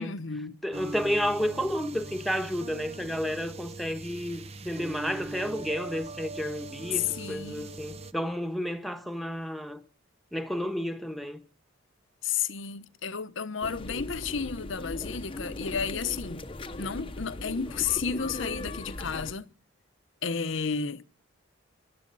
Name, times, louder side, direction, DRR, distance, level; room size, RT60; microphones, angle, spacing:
voice 1, 0.0-0.6 6.9-7.7 12.2-16.4 16.8-19.4 20.2-21.0, left 6 dB, 60° left, 0.9 m, -32 dB
voice 2, 0.6-9.8 10.3-11.4, equal, ahead, 1.3 m, -31 dB
sound 1, 0.7-8.1, right 3 dB, 30° right, 0.8 m, -41 dB
sound 2, 13.6-19.3, left 2 dB, 25° left, 0.9 m, -38 dB
21.0 x 12.0 x 4.0 m
head